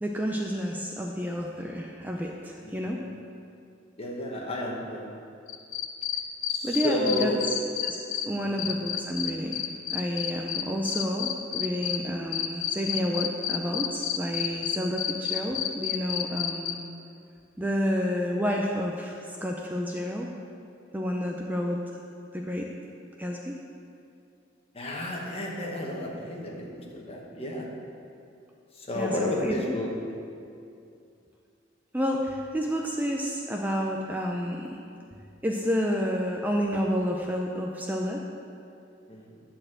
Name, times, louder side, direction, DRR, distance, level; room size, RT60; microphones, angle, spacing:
voice 1, 0.0-3.1 6.6-7.4 7.8-8.0 8.2-9.6 9.9-16.8 17.6-20.3 20.9-21.8 22.3-22.7 23.2-23.6 28.9-29.6 31.9-34.8 35.1-38.3, equal, 10° right, 0 dB, 0.5 m, -30 dB
voice 2, 4.0-5.1 6.5-7.4 8.5-8.6 24.7-27.7 28.8-29.9 39.1-39.2, left 2 dB, 30° left, -1 dB, 1.3 m, -32 dB
sound 1, 5.5-8.2 8.6-12.0 12.3-16.7, left 10 dB, 90° left, 0.6 m, -29 dB
10.0 x 4.3 x 7.6 m, 2.5 s
head